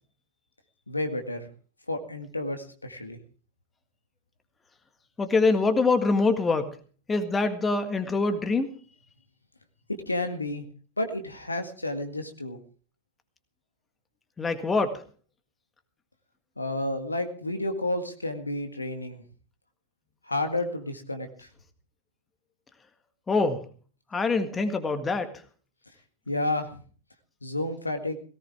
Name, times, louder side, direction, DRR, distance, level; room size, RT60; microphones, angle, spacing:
voice 1, 0.9-1.5 1.9-3.2 10.1-10.6 11.0-12.6 16.6-19.2 20.2-21.5 26.3-26.8 27.4-28.2, left 2 dB, 80° left, 6 dB, 1.8 m, -31 dB
voice 2, 5.2-6.8 7.1-8.7 14.4-15.0 23.3-23.6 24.1-25.3, left 3 dB, 15° left, 8 dB, 1.8 m, -24 dB
18.0 x 17.5 x 3.5 m, 0.41 s
figure-of-eight pair, 90°, 0 cm